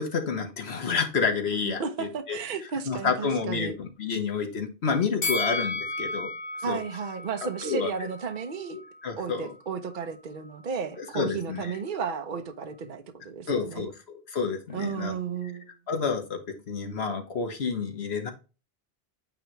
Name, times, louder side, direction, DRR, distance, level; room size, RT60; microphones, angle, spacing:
voice 1, 0.0-2.4 2.9-6.3 6.7-6.8 7.6-7.9 8.7-9.5 11.1-11.7 13.5-15.1 15.9-16.4 16.7-18.3, left 5 dB, 85° left, 1.5 m, -29 dB
voice 2, 1.6-3.8 6.6-8.8 9.2-13.9 14.7-15.7, right 6 dB, 55° right, 0.9 m, -33 dB
Bell, 5.2-8.4 8.8-8.9, left 2 dB, 65° left, 2.0 m, -33 dB
9.0 x 3.0 x 4.5 m
omnidirectional pair, 1.0 m